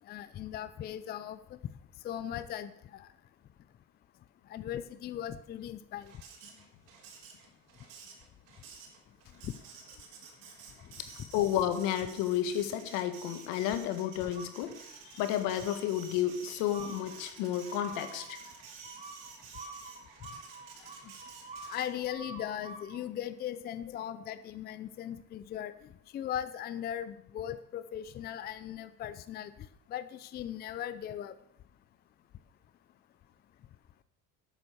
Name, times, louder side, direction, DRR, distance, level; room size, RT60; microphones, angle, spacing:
voice 1, 0.1-1.4 2.0-3.1 4.5-6.1 9.4-9.5 21.7-25.7 26.1-29.5 29.9-31.3, left 10 dB, 30° left, 13 dB, 0.5 m, -38 dB
Printer, 6.0-22.1, right 5 dB, 75° right, 3.9 m, -52 dB
voice 2, 11.0-14.8 15.0-18.4, left 11 dB, 75° left, 10 dB, 1.7 m, -32 dB
sound 1, 14.3-15.1 15.5-16.0 16.7-23.0, right 3 dB, 20° right, 1.3 m, -48 dB
11.5 x 9.1 x 6.8 m, 0.78 s
cardioid pair, 150°, 33 cm